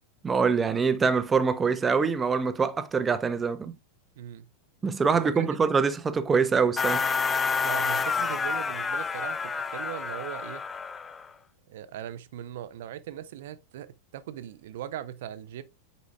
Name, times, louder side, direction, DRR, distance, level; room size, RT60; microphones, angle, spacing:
voice 1, 0.2-3.7 4.8-7.0, right 5 dB, 15° right, 0.7 m, -24 dB
voice 2, 4.2-4.5 5.1-5.6 7.6-10.6 11.7-13.9 14.1-15.6, right 11 dB, 55° right, 0.6 m, -39 dB
sound 1, 6.8-11.3, left 5 dB, 15° left, 0.4 m, -29 dB
8.1 x 5.2 x 2.3 m
figure-of-eight pair, 90°, 0 cm